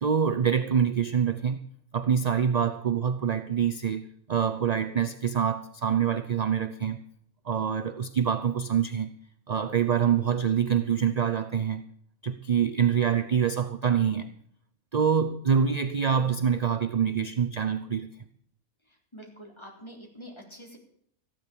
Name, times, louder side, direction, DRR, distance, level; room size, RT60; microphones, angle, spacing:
voice 1, 0.0-1.6 1.9-7.0 7.5-9.2 9.5-11.9 12.2-14.3 14.9-18.1, right 7 dB, 45° right, 11 dB, 0.5 m, -25 dB
voice 2, 18.9-20.8, equal, 20° left, 0 dB, 3.5 m, -46 dB
14.5 x 10.5 x 6.8 m, 0.67 s
omnidirectional pair, 1.5 m